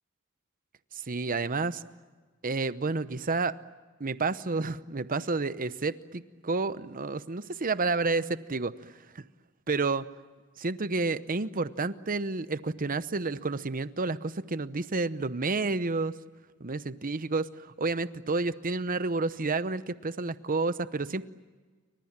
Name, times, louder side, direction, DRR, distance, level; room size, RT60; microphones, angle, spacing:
voice 1, 0.9-1.8 2.4-3.6 4.0-8.9 9.1-9.2 9.7-10.1 10.6-16.1 16.6-21.3, right 3 dB, 40° right, 14 dB, 0.9 m, -30 dB
29.5 x 25.0 x 7.4 m, 1.4 s
head